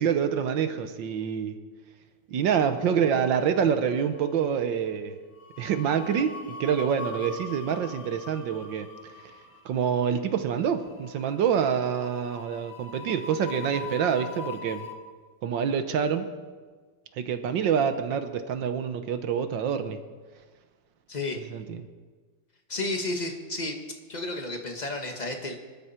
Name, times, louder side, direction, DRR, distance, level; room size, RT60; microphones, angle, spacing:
voice 1, 0.0-1.6 2.3-5.1 5.6-8.9 9.6-14.9 15.4-16.3 17.2-20.0 21.3-21.8, right 7 dB, 70° right, 10 dB, 1.6 m, -26 dB
sound 1, 2.9-3.7 3.9-4.2 5.4-14.9, left 4 dB, 50° left, 1.7 m, -42 dB
voice 2, 22.7-23.7 24.1-25.5, left 2 dB, 20° left, 3 dB, 1.6 m, -32 dB
24.0 x 12.5 x 4.4 m, 1.4 s
omnidirectional pair, 2.2 m